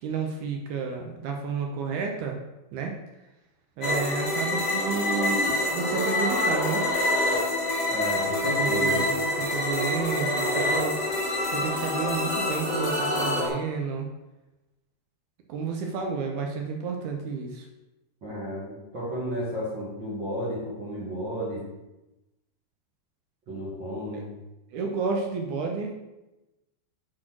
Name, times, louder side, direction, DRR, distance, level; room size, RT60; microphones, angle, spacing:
voice 1, 0.0-2.4 2.7-3.0 3.8-6.8 8.6-11.0 11.5-14.1 15.5-17.6 24.7-25.9, right 5 dB, 85° right, 2 dB, 1.7 m, -31 dB
sound 1, 3.8-13.5, left 1 dB, 25° left, 1.3 m, -26 dB
voice 2, 7.9-9.1 18.2-21.6 23.5-24.3, equal, 55° right, -7 dB, 1.3 m, -32 dB
6.2 x 4.4 x 5.9 m, 1.0 s
omnidirectional pair, 4.5 m